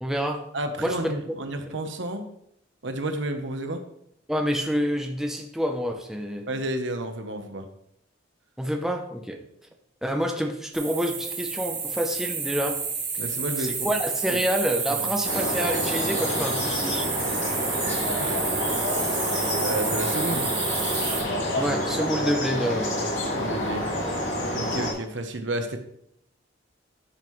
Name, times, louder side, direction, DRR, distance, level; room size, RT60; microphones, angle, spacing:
voice 1, 0.0-0.4 0.8-1.1 4.3-6.5 8.6-9.4 10.0-12.8 13.6-17.1 21.5-23.0, equal, ahead, 2 dB, 0.7 m, -28 dB
voice 2, 0.5-2.3 2.8-3.8 6.5-7.6 13.2-13.9 14.3-14.4 14.9-15.1 18.2-18.4 19.6-20.5 23.3-23.9 24.5-25.8, right 1 dB, 70° right, 6 dB, 1.0 m, -31 dB
sound 1, 10.7-21.2, right 5 dB, 25° right, 2.1 m, -30 dB
sound 2, 15.2-24.9, left 1 dB, 80° left, 2.5 m, -28 dB
12.0 x 5.6 x 3.2 m, 0.73 s
head